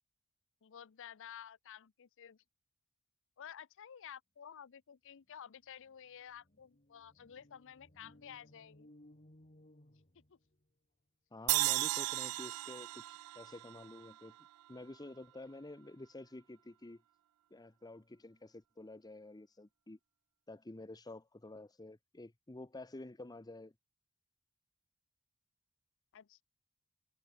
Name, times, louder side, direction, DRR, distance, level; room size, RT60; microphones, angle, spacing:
voice 1, 0.6-2.4 3.4-8.9 10.3-10.4 12.1-12.2 26.1-26.4, left 9 dB, 60° left, 0.5 m, -52 dB
sound 1, 5.3-5.4 5.6-10.7, left 1 dB, 35° left, 3.0 m, -63 dB
voice 2, 11.3-13.0 13.3-14.3 14.7-17.0 17.5-20.0 20.5-23.7, left 2 dB, 20° left, 0.7 m, -50 dB
sound 2, 11.5-14.8, right 19 dB, 85° right, 0.3 m, -35 dB
head